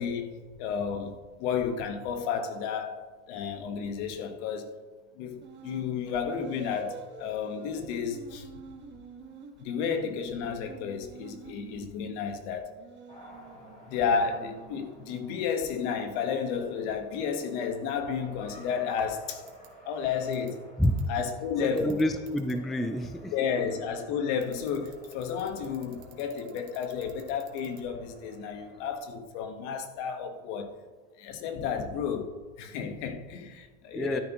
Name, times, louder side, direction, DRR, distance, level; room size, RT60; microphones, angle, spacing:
voice 1, 0.0-4.7 5.2-8.5 9.6-12.7 13.9-19.4 19.8-20.7 21.1-22.0 23.3-30.7 31.2-34.2, left 6 dB, 70° left, 1.5 m, -32 dB
sound 1, 5.4-5.9 6.3-11.9 12.6-15.6, right 5 dB, 30° right, 1.6 m, -48 dB
Race car auto racing, 13.1-28.9, right 1 dB, 20° left, 3.0 m, -53 dB
sound 2, 19.5-19.7 20.3-20.5 20.8-21.0 21.8-22.5 24.4-27.8, right 15 dB, 60° right, 1.9 m, -52 dB
voice 2, 21.6-23.3 33.9-34.2, left 1 dB, ahead, 0.3 m, -28 dB
12.0 x 9.7 x 3.0 m
supercardioid pair, 130°, 36 cm